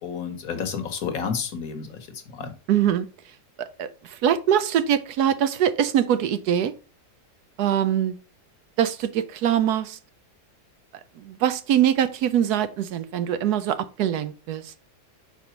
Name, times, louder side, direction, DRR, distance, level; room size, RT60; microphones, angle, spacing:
voice 1, 0.0-2.5, left 6 dB, 60° left, 1.3 m, -31 dB
voice 2, 2.7-3.1 3.6-6.7 7.6-8.1 8.8-10.0 11.2-14.7, right 10 dB, 75° right, 1.0 m, -23 dB
5.3 x 4.9 x 4.4 m
omnidirectional pair, 1.8 m